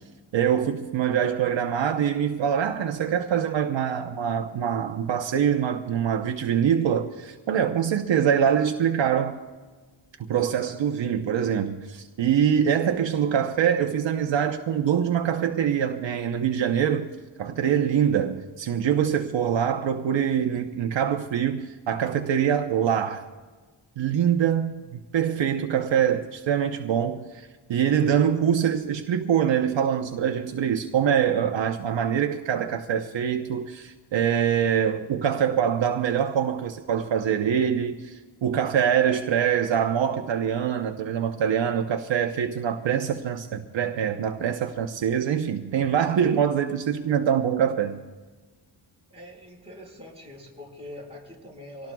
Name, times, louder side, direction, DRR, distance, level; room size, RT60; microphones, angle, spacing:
voice 1, 0.3-9.4 10.3-17.1 17.4-23.2 24.0-48.0, right 8 dB, 70° right, 0.9 m, -24 dB
voice 2, 49.1-51.9, left 1 dB, 15° right, 4.8 m, -43 dB
25.5 x 18.0 x 2.3 m
wide cardioid pair, 135°, 46 cm